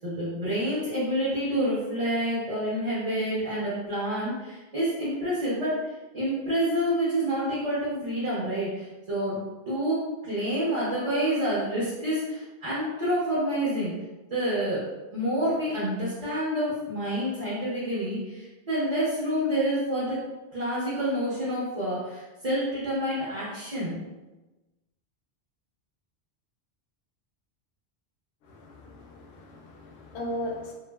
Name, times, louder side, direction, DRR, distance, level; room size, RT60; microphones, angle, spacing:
voice 1, 0.0-5.8 6.1-9.4 9.7-13.9 14.3-14.8 15.1-20.2 20.5-24.0, equal, 40° right, -10 dB, 0.8 m, -28 dB
voice 2, 28.5-30.7, left 1 dB, 80° left, 1 dB, 0.8 m, -37 dB
3.0 x 2.4 x 2.2 m, 1.1 s
omnidirectional pair, 1.1 m